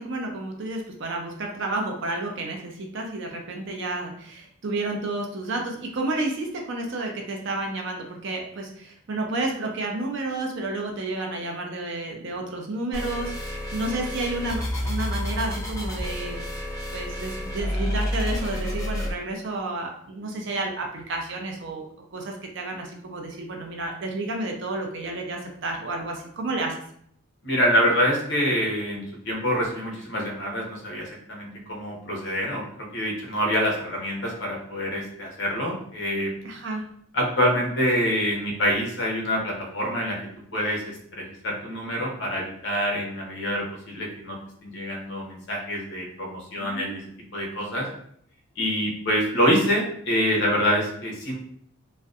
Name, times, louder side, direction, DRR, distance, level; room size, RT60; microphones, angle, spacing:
voice 1, 0.0-16.4 16.9-21.8 22.1-26.7 36.4-36.8 46.6-47.0, right 2 dB, 55° right, 2 dB, 0.4 m, -31 dB
sound 1, 12.9-19.1, equal, 15° left, 0.4 m, -30 dB
voice 2, 27.4-32.6 32.9-36.3 37.1-40.2 40.5-44.4 44.6-47.0 47.3-47.9 48.6-51.3, equal, 55° left, -2 dB, 0.7 m, -26 dB
2.6 x 2.1 x 2.3 m, 0.67 s
head